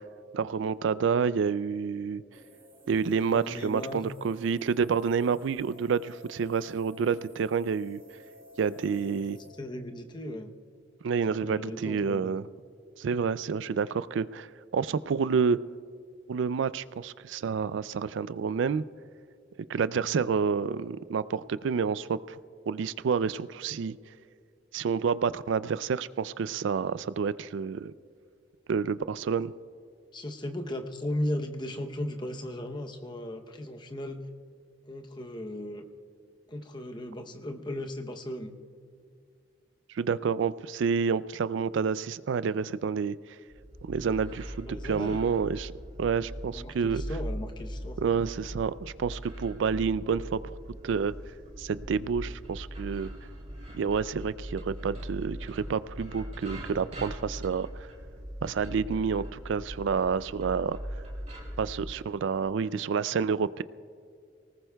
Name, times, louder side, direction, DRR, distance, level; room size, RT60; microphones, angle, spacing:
voice 1, 0.3-2.2 2.9-8.0 8.6-9.4 11.0-12.5 13.0-14.5 14.7-15.6 16.3-18.8 19.7-22.4 22.7-23.9 24.7-27.9 28.7-29.5 39.9-43.2 43.9-45.7 46.0-47.0 48.0-50.6 50.8-51.1 51.6-53.1 53.7-57.9 58.4-60.8 61.6-63.6, right 6 dB, 70° right, 16 dB, 0.3 m, -29 dB
sound 1, 2.3-9.5, left 1 dB, 15° right, 2.6 m, -54 dB
voice 2, 3.3-4.0 8.9-9.2 9.6-10.5 11.4-12.3 30.1-34.2 34.9-35.8 36.5-38.5 44.7-45.2 46.5-48.0, left 1 dB, 25° left, 5 dB, 0.8 m, -36 dB
sound 2, 43.5-61.8, equal, 35° right, 2.7 m, -40 dB
23.5 x 19.0 x 2.3 m, 2.3 s
head